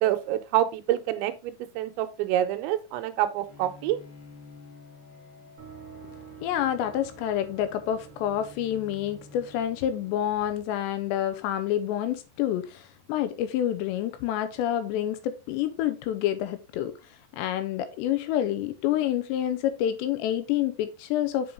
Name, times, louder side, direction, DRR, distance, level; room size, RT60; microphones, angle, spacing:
voice 1, 0.0-4.0, right 12 dB, 85° right, 3.0 m, -27 dB
Bowed string instrument, 3.5-10.1, left 4 dB, 55° left, 2.7 m, -51 dB
sound 1, 5.6-11.5, right 8 dB, 45° right, 2.5 m, -50 dB
voice 2, 6.4-17.0 17.3-21.5, left 11 dB, 80° left, 2.8 m, -28 dB
7.8 x 5.4 x 3.4 m
omnidirectional pair, 5.2 m